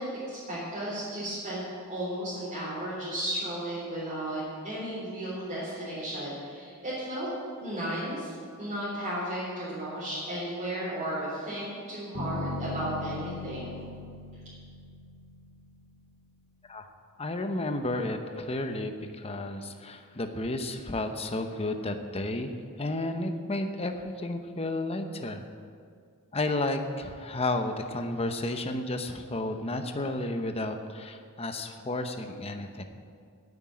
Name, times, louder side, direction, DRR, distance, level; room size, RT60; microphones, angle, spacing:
voice 1, 0.0-7.3 7.6-13.8, right 1 dB, 30° right, -10 dB, 3.8 m, -34 dB
Bass guitar, 12.1-16.1, left 3 dB, 75° right, 2.6 m, -39 dB
voice 2, 17.2-22.5 22.8-25.4 26.3-32.8, left 2 dB, 25° left, 6 dB, 0.8 m, -32 dB
9.8 x 9.1 x 8.6 m, 2.2 s
head